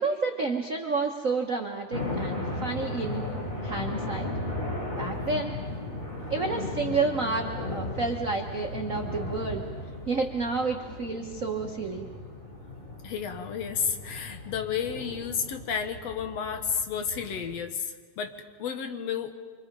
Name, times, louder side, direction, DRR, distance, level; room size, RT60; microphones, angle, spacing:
voice 1, 0.0-3.2 3.6-4.3 5.0-5.5 6.3-9.6 10.1-12.1, right 4 dB, 80° right, 2 dB, 0.7 m, -30 dB
sound 1, 1.9-17.6, left 2 dB, 25° left, 3.8 m, -36 dB
voice 2, 5.1-5.5 13.0-18.3 18.6-19.3, left 7 dB, 65° left, 7 dB, 2.1 m, -32 dB
26.0 x 25.0 x 5.3 m, 1.5 s
omnidirectional pair, 3.5 m